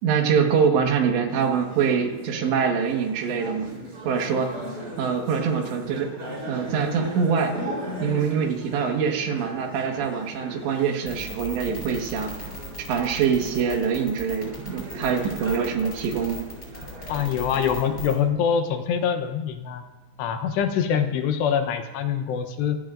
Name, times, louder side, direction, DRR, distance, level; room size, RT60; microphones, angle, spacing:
voice 1, 0.0-3.7 4.1-4.5 5.0-6.1 6.5-7.5 8.0-12.3 12.8-16.5, right 6 dB, 75° right, 2 dB, 3.8 m, -24 dB
sound 1, 1.3-18.1, equal, 20° right, 3.9 m, -37 dB
sound 2, 11.1-18.2, equal, 10° left, 7.1 m, -38 dB
voice 2, 17.1-19.8 20.2-22.8, left 7 dB, 75° left, 7 dB, 3.0 m, -24 dB
26.5 x 16.0 x 2.6 m, 1.1 s
omnidirectional pair, 5.2 m